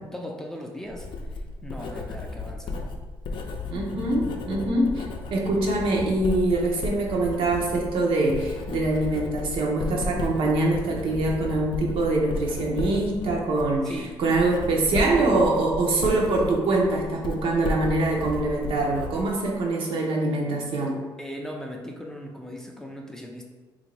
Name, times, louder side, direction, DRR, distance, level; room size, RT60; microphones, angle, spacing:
voice 1, 0.1-2.9 13.8-14.2 21.2-23.4, equal, 5° left, 0 dB, 0.4 m, -38 dB
Writing, 0.9-19.7, left 3 dB, 60° left, 0.5 m, -34 dB
voice 2, 3.7-5.1 5.3-21.0, right 2 dB, 70° right, -1 dB, 0.7 m, -24 dB
3.3 x 2.5 x 3.2 m, 1.3 s
cardioid pair, 95°, 9 cm